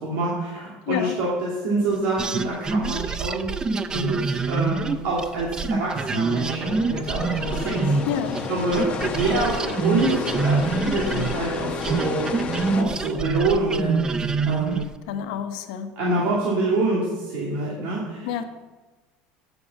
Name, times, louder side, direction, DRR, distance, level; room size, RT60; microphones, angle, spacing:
voice 1, 0.0-3.5 3.9-7.9 8.5-12.5 12.7-14.0 14.4-14.8 16.0-18.4, right 2 dB, 70° right, -5 dB, 2.6 m, -26 dB
sound 1, 2.2-8.5 8.7-14.9, right 4 dB, 20° right, 0.5 m, -26 dB
sound 2, 6.5-12.8, left 4 dB, 30° left, 1.2 m, -31 dB
voice 2, 8.1-8.4 15.1-15.9 18.2-18.4, left 9 dB, 80° left, 6 dB, 1.1 m, -28 dB
8.5 x 6.7 x 7.3 m, 1.2 s
cardioid pair, 135°, 4 cm